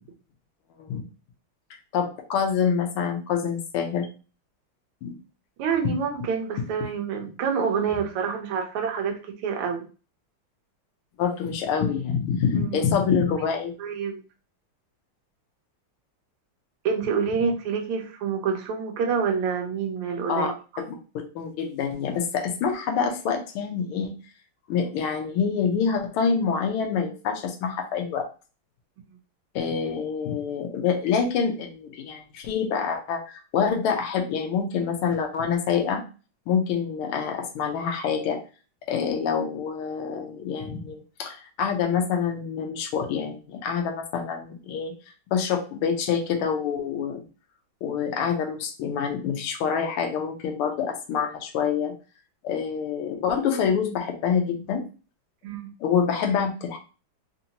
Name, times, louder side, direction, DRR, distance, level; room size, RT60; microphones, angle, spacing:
voice 1, 1.9-4.1 5.0-5.1 11.2-13.7 20.3-20.5 21.3-24.1 24.7-28.3 29.5-36.0 36.5-38.4 38.9-44.9 45.3-47.2 47.8-51.9 52.4-54.8 55.8-56.8, left 6 dB, 80° left, 3 dB, 1.6 m, -26 dB
voice 2, 5.6-9.9 12.6-12.8 13.8-14.2 16.8-20.8 55.4-55.7, right 6 dB, 80° right, 3 dB, 1.7 m, -27 dB
4.3 x 2.7 x 2.8 m, 0.35 s
omnidirectional pair, 2.4 m